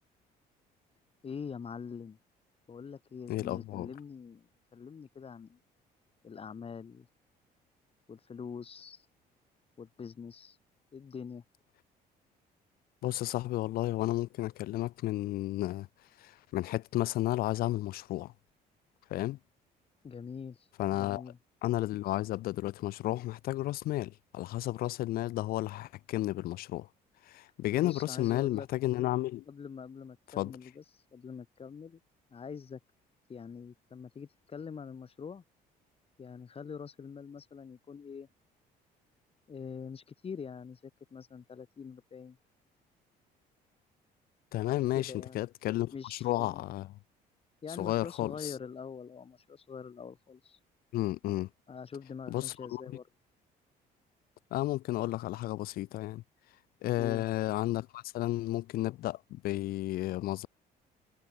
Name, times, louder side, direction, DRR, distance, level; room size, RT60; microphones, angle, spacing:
voice 1, 1.2-2.2 2.7-5.6 6.2-7.1 8.1-9.1 9.8-10.6 10.9-11.4 20.0-21.4 27.7-28.7 29.5-32.0 32.3-32.8 33.3-35.4 36.2-38.3 39.5-42.4 44.9-45.4 45.9-46.6 47.6-50.6 51.7-53.0 57.0-57.3, left 6 dB, 35° left, 4.8 m, -44 dB
voice 2, 3.3-3.9 13.0-15.9 16.2-18.3 19.1-19.4 20.8-21.2 21.6-26.9 27.3-29.4 30.4-30.5 44.5-46.9 47.8-48.5 50.9-51.5 52.3-52.8 54.5-56.2 56.8-60.5, left 16 dB, 60° left, 0.4 m, -32 dB
cardioid pair, 110°, 17 cm